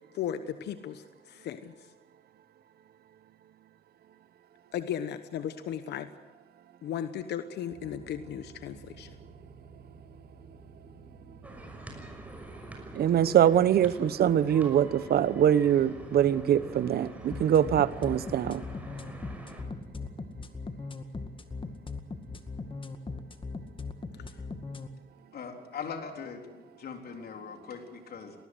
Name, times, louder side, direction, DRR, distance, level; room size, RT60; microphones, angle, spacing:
voice 1, 0.1-1.7 4.7-6.1 6.8-9.1, left 9 dB, 80° left, 11 dB, 1.0 m, -36 dB
sound 1, 7.7-20.3, right 3 dB, 25° right, 3.6 m, -51 dB
sound 2, 11.4-19.6, right 1 dB, 10° right, 6.1 m, -47 dB
voice 2, 12.9-18.6, right 10 dB, 65° right, 16 dB, 1.0 m, -23 dB
sound 3, 17.3-24.9, left 4 dB, 30° left, 2.0 m, -38 dB
voice 3, 25.3-28.3, left 6 dB, 65° left, 4 dB, 3.8 m, -41 dB
20.0 x 19.5 x 8.0 m, 1.3 s
cardioid pair, 80°, 17 cm